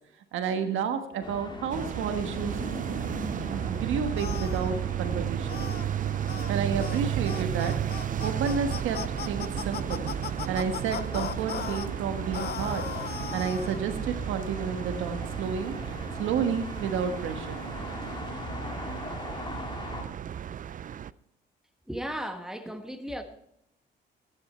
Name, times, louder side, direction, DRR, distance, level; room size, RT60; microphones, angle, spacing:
voice 1, 0.3-2.6 2.9-3.0 3.4-5.7 6.5-10.1 10.5-12.8 13.3-15.7 16.1-17.6, right 6 dB, 85° right, 7 dB, 1.4 m, -31 dB
sound 1, 1.2-20.0, left 3 dB, 25° left, 2.2 m, -42 dB
sound 2, 1.7-21.1, right 10 dB, 40° right, 0.4 m, -33 dB
sound 3, 4.2-4.7 5.5-5.9 6.3-6.5 6.8-7.0 7.3-11.9 12.3-13.8, left 10 dB, 55° left, 0.6 m, -37 dB
voice 2, 21.9-23.2, equal, 5° right, 6 dB, 1.5 m, -35 dB
14.0 x 10.0 x 4.4 m, 0.76 s
cardioid pair, 90°, 20 cm